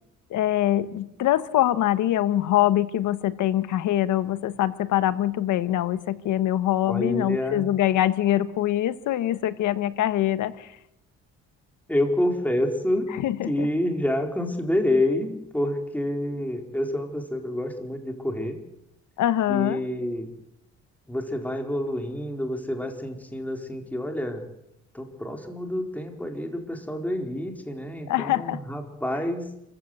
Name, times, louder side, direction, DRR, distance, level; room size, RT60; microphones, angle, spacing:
voice 1, 0.3-10.7 13.2-13.7 19.2-19.8 28.1-28.6, left 13 dB, 80° left, 13 dB, 1.4 m, -24 dB
voice 2, 6.8-7.7 11.9-13.1 13.5-18.6 19.5-20.3 21.1-24.4 24.9-29.5, left 1 dB, 5° left, 3 dB, 4.4 m, -28 dB
27.5 x 15.5 x 8.0 m, 0.83 s
cardioid pair, 90°, 30 cm